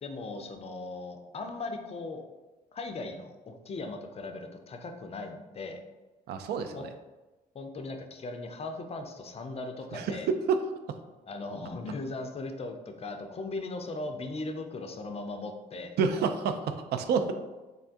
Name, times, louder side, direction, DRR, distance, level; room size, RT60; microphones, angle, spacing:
voice 1, 0.0-2.2 2.7-5.8 6.7-6.8 7.5-10.3 11.3-16.0, left 2 dB, 30° left, 5 dB, 0.5 m, -38 dB
voice 2, 6.3-6.9 9.9-10.1 10.5-10.6 16.0-17.3, right 6 dB, 55° right, 7 dB, 0.4 m, -28 dB
3.6 x 2.2 x 2.5 m, 1.1 s
hypercardioid pair, 55°, 20 cm